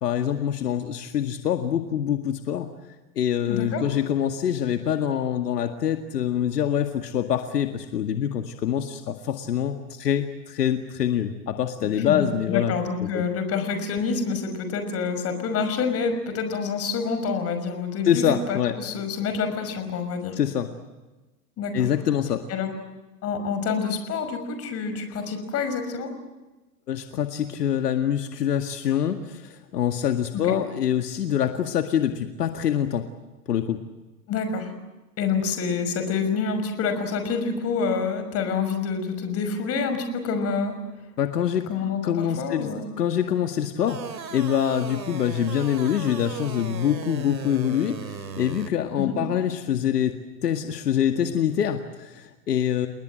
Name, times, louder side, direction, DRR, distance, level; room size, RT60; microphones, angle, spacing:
voice 1, 0.0-2.7 3.2-12.7 13.0-13.2 18.0-18.8 20.4-20.7 21.7-22.4 26.9-33.1 33.5-33.8 41.2-41.7 42.0-42.7 43.0-44.0 44.3-52.9, left 9 dB, 70° left, 6 dB, 2.1 m, -25 dB
voice 2, 3.5-3.8 12.0-20.4 21.6-21.9 22.5-22.7 23.2-26.1 30.3-30.5 34.3-34.7 35.2-40.8 41.7-42.8 49.0-49.2, left 5 dB, 30° left, 8 dB, 5.9 m, -27 dB
sound 1, 43.9-48.7, right 6 dB, 85° right, 2.7 m, -37 dB
30.0 x 20.5 x 7.8 m, 1.1 s
hypercardioid pair, 120°, 49 cm